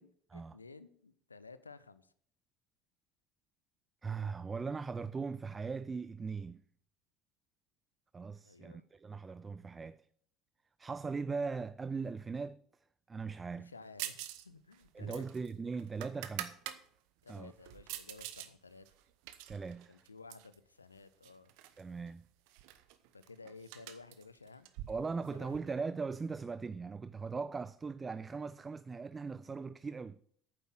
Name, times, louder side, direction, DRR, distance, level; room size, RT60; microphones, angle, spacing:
voice 1, 0.0-2.1 8.4-8.8 13.6-15.2 17.2-18.9 19.9-21.5 23.1-24.7 25.3-25.8, left 4 dB, 85° left, 0.5 m, -54 dB
voice 2, 4.0-6.6 8.1-10.1 10.8-12.6 13.1-13.7 14.9-16.6 17.3-17.5 19.5-20.0 21.8-22.2 24.9-30.2, right 4 dB, 20° right, 0.3 m, -39 dB
sound 1, 14.0-14.5 14.7-16.8 17.3-18.5 18.9-20.6 21.2-21.8 22.1-22.2 22.5-25.6, right 13 dB, 60° right, 0.8 m, -45 dB
9.1 x 7.5 x 6.1 m
figure-of-eight pair, 65°, 0 cm